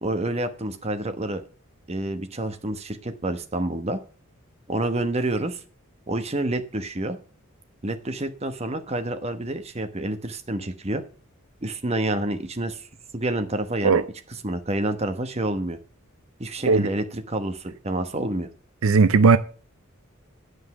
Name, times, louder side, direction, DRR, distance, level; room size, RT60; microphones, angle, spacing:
voice 1, 0.0-1.4 1.9-4.0 4.7-5.6 6.1-7.2 7.8-11.0 11.6-12.9 13.1-14.0 14.4-15.8 16.4-18.5, right 1 dB, 30° right, 1.1 m, -28 dB
voice 2, 18.8-19.4, right 4 dB, 75° right, 0.5 m, -16 dB
9.7 x 5.4 x 7.9 m
head